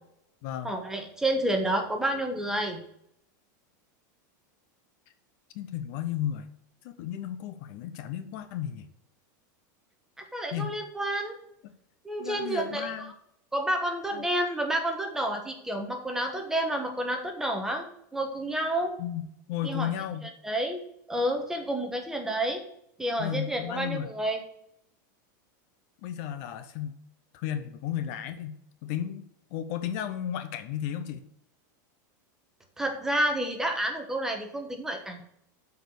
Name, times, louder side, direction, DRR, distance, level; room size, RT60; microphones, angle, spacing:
voice 1, 0.6-2.8 10.2-11.4 12.0-12.9 13.5-17.8 18.1-19.0 19.6-19.9 20.4-20.8 21.1-22.6 23.0-24.4 32.8-35.2, right 1 dB, 5° right, 3 dB, 1.2 m, -29 dB
voice 2, 5.5-6.5 6.8-8.9 10.5-10.7 12.2-13.1 14.1-14.3 19.0-19.2 19.5-20.3 23.2-24.1 26.0-27.0 27.3-31.2, left 10 dB, 50° left, 10 dB, 0.8 m, -34 dB
8.0 x 4.8 x 6.5 m, 0.73 s
supercardioid pair, 150°, 11 cm